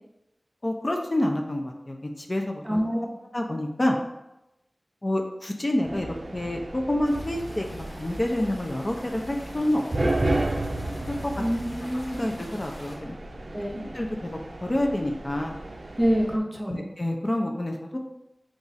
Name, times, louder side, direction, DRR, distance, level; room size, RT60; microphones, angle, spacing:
voice 1, 0.6-3.1 3.3-4.0 5.0-9.8 11.1-11.3 11.8-13.2 13.9-15.6 16.7-18.0, left 1 dB, 35° left, 2 dB, 0.5 m, -28 dB
voice 2, 2.6-3.1 11.4-11.6 11.8-12.3 13.5-13.8 16.0-16.8, equal, 20° right, 1 dB, 0.7 m, -26 dB
sound 1, 5.8-16.4, right 1 dB, 65° right, 0.4 m, -33 dB
sound 2, 7.0-12.9, equal, 55° left, 1.1 m, -48 dB
3.9 x 2.4 x 4.0 m, 0.92 s
wide cardioid pair, 50°, 0 cm